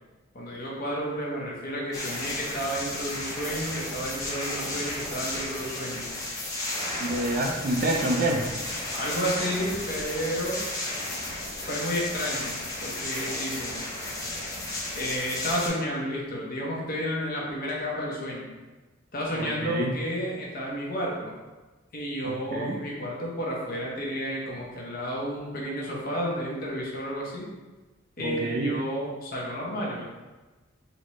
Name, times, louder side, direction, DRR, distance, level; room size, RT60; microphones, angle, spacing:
voice 1, 0.3-6.1 8.9-10.6 11.7-13.8 14.9-18.5 19.1-21.3 21.9-27.5 28.2-30.0, equal, 45° left, -4 dB, 0.7 m, -31 dB
sound 1, 1.9-15.7, left 1 dB, 15° left, 0.7 m, -33 dB
voice 2, 7.0-8.4 19.3-19.9 22.2-22.8 28.2-28.7, right 1 dB, 45° right, 1 dB, 0.4 m, -27 dB
4.1 x 2.1 x 3.0 m, 1.2 s
head